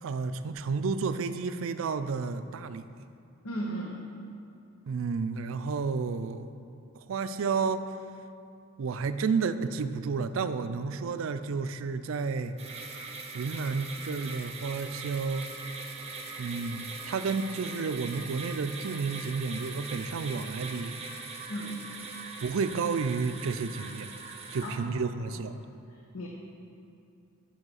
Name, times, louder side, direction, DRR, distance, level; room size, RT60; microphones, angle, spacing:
voice 1, 0.0-2.9 4.9-6.5 7.0-7.9 8.8-12.5 13.3-15.5 16.4-21.0 22.4-24.1 24.5-25.6, right 4 dB, 70° right, 11 dB, 0.4 m, -31 dB
voice 2, 3.4-4.0 21.5-21.8 24.6-25.0 25.3-25.4 26.1-26.3, right 1 dB, 85° left, -1 dB, 0.8 m, -36 dB
sound 1, 12.6-24.8, right 4 dB, 30° right, 0.7 m, -41 dB
7.4 x 5.6 x 6.3 m, 2.6 s
head